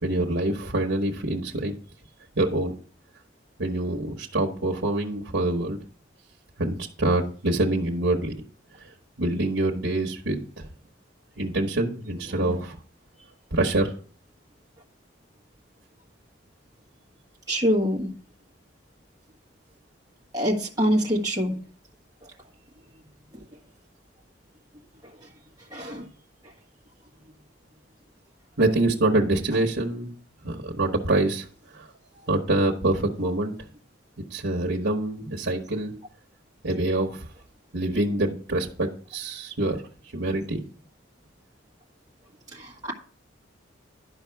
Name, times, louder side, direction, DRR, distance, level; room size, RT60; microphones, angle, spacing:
voice 1, 0.0-1.7 2.4-2.7 3.6-5.8 6.6-8.3 8.8-8.9 9.2-10.7 11.4-12.8 13.5-13.9 28.6-30.1 30.4-31.5 31.7-31.9 32.3-33.5 34.3-35.9 36.6-37.2 37.7-39.8 40.1-40.6, right 2 dB, 80° right, -1 dB, 1.2 m, -25 dB
voice 2, 17.5-18.1 20.3-21.6 25.7-26.0 42.6-42.9, equal, 20° right, -2 dB, 1.5 m, -25 dB
11.0 x 5.5 x 4.6 m, 0.43 s
head